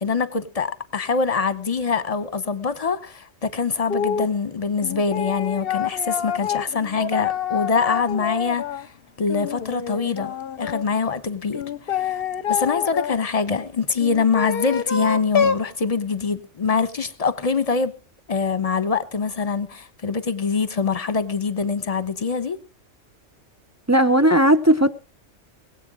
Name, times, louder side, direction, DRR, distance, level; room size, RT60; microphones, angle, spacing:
voice 1, 0.0-8.9 9.2-12.2 12.5-17.9 18.3-22.6, left 5 dB, 30° left, 1.1 m, -24 dB
sound 1, 3.9-4.3 4.8-8.9 9.3-10.8 11.5-13.2 14.0-15.7, left 8 dB, 50° left, 0.9 m, -27 dB
voice 2, 23.9-24.9, right 1 dB, 15° right, 0.6 m, -16 dB
21.0 x 8.4 x 4.9 m
omnidirectional pair, 1.3 m